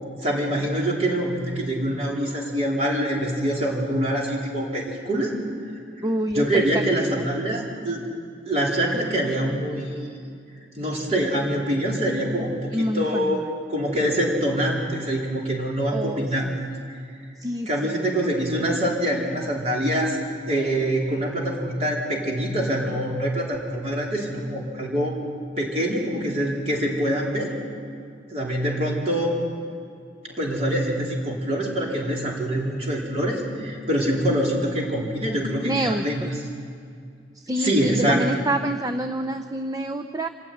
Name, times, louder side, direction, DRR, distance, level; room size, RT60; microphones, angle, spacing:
voice 1, 0.2-5.3 6.0-6.1 6.3-8.0 8.5-9.8 10.8-13.4 13.7-16.5 17.7-20.2 20.5-25.2 25.6-27.5 28.3-29.4 30.4-36.3 37.6-38.4, right 1 dB, 35° right, -2 dB, 4.2 m, -25 dB
voice 2, 6.0-6.8 7.2-7.3 12.7-13.4 15.9-16.6 17.4-18.1 35.6-36.3 37.5-40.3, right 1 dB, 20° right, 6 dB, 0.6 m, -27 dB
26.0 x 15.0 x 9.2 m, 2.4 s
head